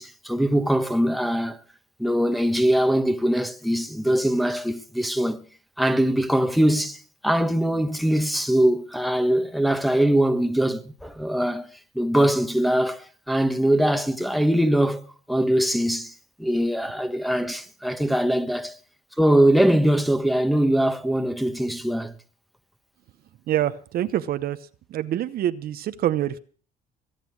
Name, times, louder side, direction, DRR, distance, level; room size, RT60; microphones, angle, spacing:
voice 1, 0.0-1.6 2.0-5.4 5.8-18.8 19.2-22.1, right 1 dB, ahead, 1.2 m, -22 dB
voice 2, 23.5-24.6 24.9-26.4, right 12 dB, 65° right, 0.9 m, -26 dB
22.5 x 9.2 x 6.3 m
cardioid pair, 110°, 17 cm